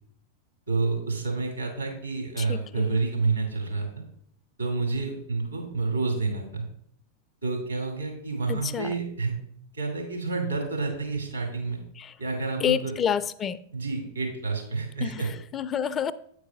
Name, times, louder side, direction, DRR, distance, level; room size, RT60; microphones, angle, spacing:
voice 1, 0.7-4.0 4.6-6.7 7.4-9.4 9.7-11.8 12.2-12.9 13.7-15.3, right 3 dB, 80° right, 2.5 m, -29 dB
voice 2, 2.4-3.0 8.5-8.9 12.0-12.1 12.6-13.6 15.0-16.1, left 8 dB, 25° left, 0.3 m, -29 dB
8.4 x 4.7 x 5.1 m
figure-of-eight pair, 90°, 0 cm